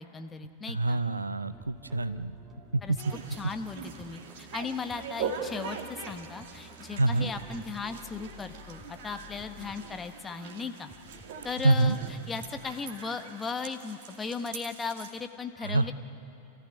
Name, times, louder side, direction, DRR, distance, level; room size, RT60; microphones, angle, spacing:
voice 1, 0.0-1.0 2.8-2.9 3.4-10.9 11.4-12.0 12.3-15.9, left 5 dB, 15° left, 7 dB, 1.3 m, -37 dB
voice 2, 0.7-2.4 2.7-3.0 6.9-7.3 11.6-12.0 15.6-15.9, right 2 dB, 80° right, 14 dB, 0.7 m, -26 dB
sound 1, 1.5-10.4 10.9-12.7, left 1 dB, 10° right, 2.8 m, -52 dB
sound 2, 3.0-15.1, right 6 dB, 55° right, 2.2 m, -42 dB
28.0 x 15.0 x 10.0 m, 2.7 s
figure-of-eight pair, 90°, 0 cm